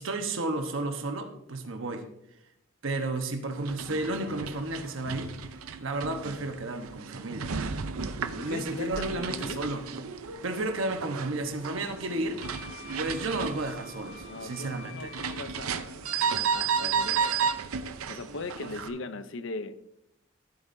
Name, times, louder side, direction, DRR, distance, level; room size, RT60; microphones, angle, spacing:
voice 1, 0.0-2.0 2.8-5.3 5.8-7.5 8.1-9.8 10.4-12.4 13.0-15.1 18.8-18.9, right 2 dB, 65° right, 1.1 m, -32 dB
sound 1, 3.6-18.9, right 6 dB, 90° right, 0.6 m, -34 dB
voice 2, 8.4-9.6 14.3-17.3 18.1-19.8, left 3 dB, 65° left, 0.6 m, -39 dB
Wind instrument woodwind instrument, 12.4-15.8, left 5 dB, 80° left, 3.2 m, -48 dB
13.5 x 8.2 x 2.7 m
head